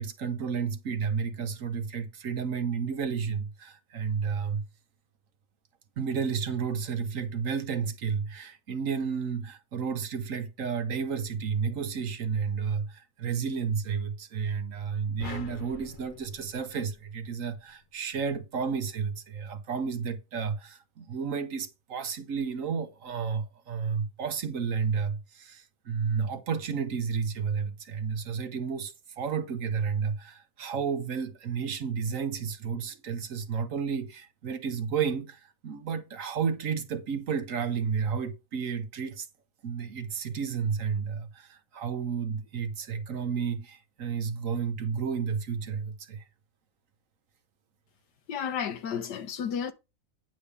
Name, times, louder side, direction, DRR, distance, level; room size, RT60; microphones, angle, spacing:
voice 1, 0.0-4.7 6.0-39.3 39.6-46.2, right 6 dB, 60° right, 1.1 m, -32 dB
sound 1, 15.2-17.6, left 5 dB, 50° left, 0.6 m, -43 dB
voice 2, 48.3-49.7, left 7 dB, 85° left, 1.6 m, -32 dB
9.5 x 3.5 x 7.0 m
omnidirectional pair, 1.8 m